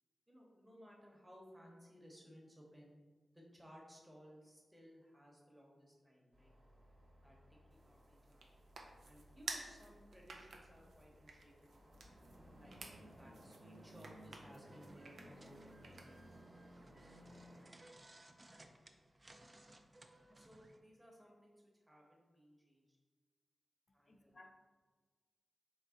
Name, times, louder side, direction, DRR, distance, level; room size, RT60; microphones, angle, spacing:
voice 1, 0.3-3.0 3.3-6.5 7.2-8.4 9.0-11.8 12.5-16.3 20.3-23.0 23.9-24.4, equal, 10° right, -2 dB, 1.0 m, -61 dB
sound 1, 6.3-17.6, equal, 60° right, 1.1 m, -60 dB
sound 2, 7.7-16.4, right 3 dB, 85° right, 0.5 m, -54 dB
sound 3, 14.6-20.8, right 1 dB, 30° right, 0.4 m, -62 dB
voice 2, 23.9-24.5, left 2 dB, 45° left, 4 dB, 0.5 m, -61 dB
4.0 x 3.3 x 3.7 m, 1.4 s
wide cardioid pair, 85°, 0 cm